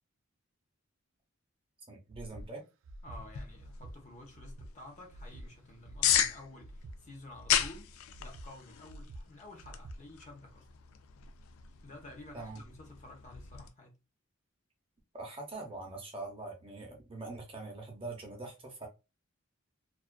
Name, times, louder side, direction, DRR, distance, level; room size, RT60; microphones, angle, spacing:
voice 1, 1.9-2.6 12.3-12.6 15.1-18.9, right 2 dB, 25° right, 0.7 m, -43 dB
Breathing, 2.1-2.5 2.8-3.2 3.6-4.0 4.3-4.7 5.1-5.5 5.8-6.2 6.6-7.0 7.3-7.7 8.1-8.5 8.9-9.2 9.6-10.0, right 1 dB, 65° right, 0.3 m, -47 dB
voice 2, 3.0-10.7 11.8-14.0, left 2 dB, 35° left, 0.8 m, -51 dB
sound 1, 3.1-13.7, left 10 dB, 85° left, 0.4 m, -36 dB
2.4 x 2.3 x 2.2 m
head